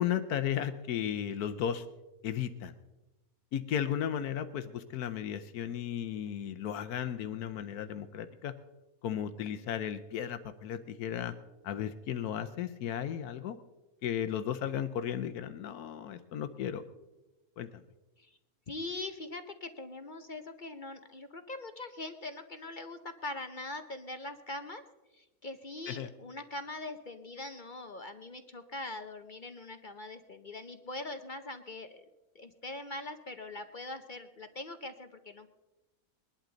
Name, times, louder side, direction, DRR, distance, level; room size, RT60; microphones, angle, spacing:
voice 1, 0.0-1.8 2.2-2.7 3.5-8.5 9.0-11.3 11.6-13.6 14.0-16.8 17.6-17.7 25.9-26.1, left 9 dB, 80° left, 10 dB, 1.2 m, -35 dB
voice 2, 18.7-24.8 25.1-32.0 32.3-35.5, left 2 dB, 45° left, 8 dB, 0.7 m, -42 dB
21.5 x 11.5 x 3.9 m, 1.1 s
omnidirectional pair, 1.6 m